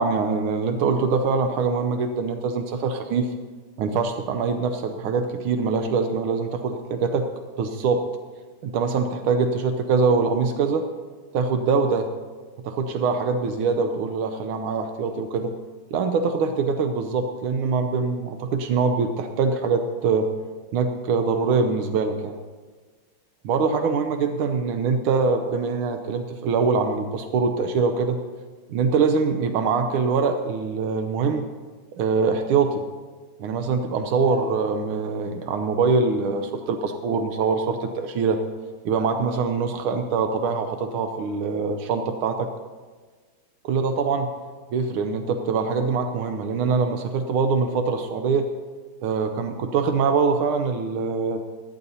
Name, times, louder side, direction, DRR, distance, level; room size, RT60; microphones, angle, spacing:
voice 1, 0.0-3.3 3.8-7.3 7.6-8.1 8.6-10.8 11.3-12.1 12.6-15.5 15.9-20.3 20.7-22.4 23.4-28.2 28.7-31.4 32.0-32.8 33.4-38.4 38.8-42.5 43.6-44.3 44.7-48.5 49.0-51.4, right 4 dB, 85° right, 6 dB, 1.6 m, -23 dB
19.0 x 13.5 x 2.8 m, 1.4 s
omnidirectional pair, 2.3 m